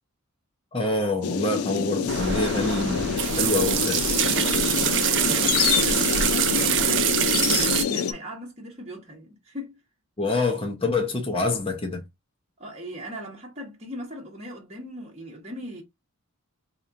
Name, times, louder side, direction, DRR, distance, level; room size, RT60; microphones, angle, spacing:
voice 1, 0.7-4.0 10.2-12.0, left 3 dB, 25° left, 0.7 m, -26 dB
sound 1, 1.2-8.1, left 7 dB, 90° left, 0.5 m, -26 dB
sound 2, 2.1-7.8, right 9 dB, 55° right, 0.5 m, -24 dB
voice 2, 4.8-9.8 12.6-15.8, left 1 dB, 30° right, 1.2 m, -38 dB
4.1 x 2.9 x 2.5 m
head